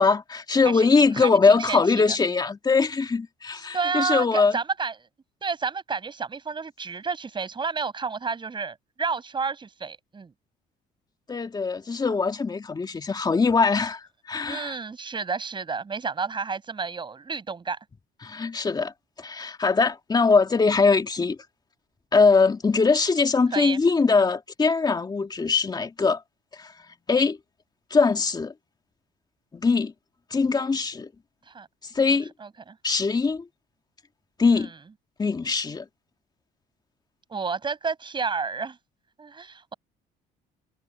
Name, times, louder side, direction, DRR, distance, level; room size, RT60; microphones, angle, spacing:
voice 1, 0.0-4.6 11.3-14.8 18.2-18.9 19.2-21.4 22.1-26.2 26.5-26.7 27.1-27.4 27.9-28.5 29.5-29.9 30.3-31.1 31.9-32.3 32.8-33.5 34.4-34.7 35.2-35.9, left 4 dB, 25° left, 2.5 m, -22 dB
voice 2, 1.1-2.2 3.7-5.0 5.4-10.3 14.4-17.8 23.5-23.8 31.5-31.7 32.4-32.8 34.5-34.7 37.3-38.8 39.2-39.7, right 5 dB, 30° right, 6.7 m, -30 dB
cardioid pair, 110°, 17 cm